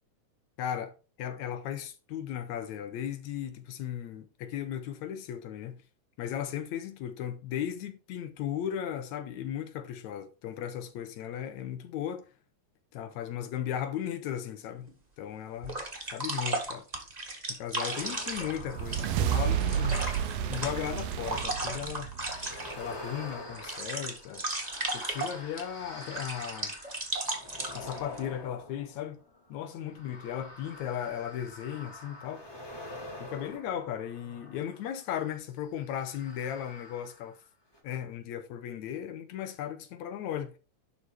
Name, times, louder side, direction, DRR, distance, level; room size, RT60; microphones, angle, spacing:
voice 1, 0.6-0.9 1.2-5.8 6.2-12.2 12.9-14.9 15.2-16.9 17.5-20.1 20.5-22.1 22.8-24.5 24.9-26.8 27.7-29.2 29.5-32.4 33.2-37.4 37.8-40.5, left 10 dB, 80° left, 2.3 m, -36 dB
sound 1, 14.9-15.0 15.6-22.9 23.3-25.6 26.0-28.2, right 2 dB, 20° right, 1.2 m, -35 dB
sound 2, 17.9-21.6 22.2-35.0 35.8-37.4 37.7-37.8, left 1 dB, 10° left, 1.4 m, -47 dB
sound 3, 18.4-22.9, right 9 dB, 70° right, 1.7 m, -31 dB
11.5 x 4.1 x 4.8 m
omnidirectional pair, 3.3 m